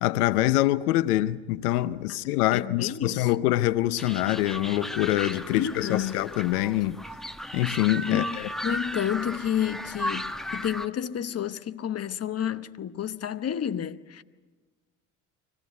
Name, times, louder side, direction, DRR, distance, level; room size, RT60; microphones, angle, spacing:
voice 1, 0.0-7.0 7.5-8.5, left 16 dB, 85° left, 0.7 m, -25 dB
voice 2, 2.5-3.3 5.5-6.2 8.0-14.2, left 9 dB, 35° left, 1.0 m, -30 dB
sound 1, 4.0-10.9, equal, ahead, 1.2 m, -35 dB
25.0 x 17.5 x 9.4 m
hypercardioid pair, 70°, 44 cm